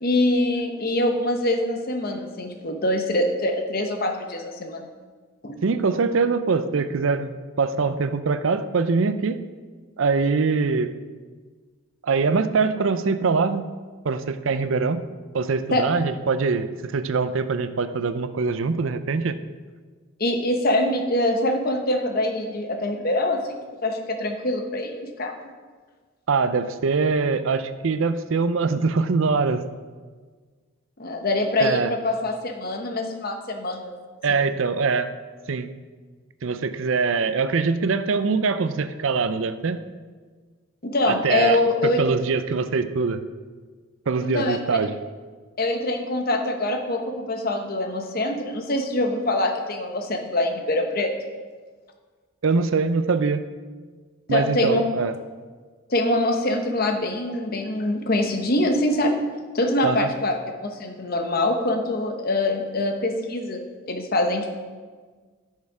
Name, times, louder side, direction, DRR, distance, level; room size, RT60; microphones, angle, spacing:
voice 1, 0.0-4.9 5.4-5.6 15.7-15.9 20.2-25.3 31.0-33.9 34.3-34.4 40.8-42.0 44.2-44.6 45.6-51.1 54.3-54.8 55.9-59.1 59.5-60.4 60.6-63.6 63.9-64.6, left 1 dB, 45° left, 5 dB, 1.0 m, -24 dB
voice 2, 5.6-7.3 7.6-9.4 10.0-10.9 12.0-13.7 14.0-15.0 15.3-19.4 26.3-29.6 31.6-31.9 34.2-35.1 35.5-35.7 36.4-39.8 41.1-43.2 44.1-45.0 52.4-53.4 54.3-55.1 59.8-60.1, right 4 dB, 70° right, 12 dB, 0.5 m, -23 dB
10.5 x 6.5 x 4.9 m, 1.5 s
head